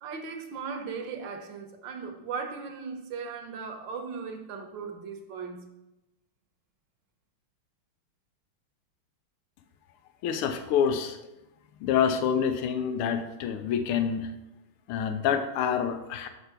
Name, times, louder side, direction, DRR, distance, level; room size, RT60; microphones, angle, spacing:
voice 1, 0.0-5.6, right 5 dB, 65° right, 4 dB, 1.4 m, -37 dB
voice 2, 10.2-11.2 11.8-14.3 14.9-16.3, left 7 dB, 90° left, 8 dB, 1.5 m, -27 dB
6.6 x 4.5 x 5.8 m, 0.96 s
omnidirectional pair, 2.4 m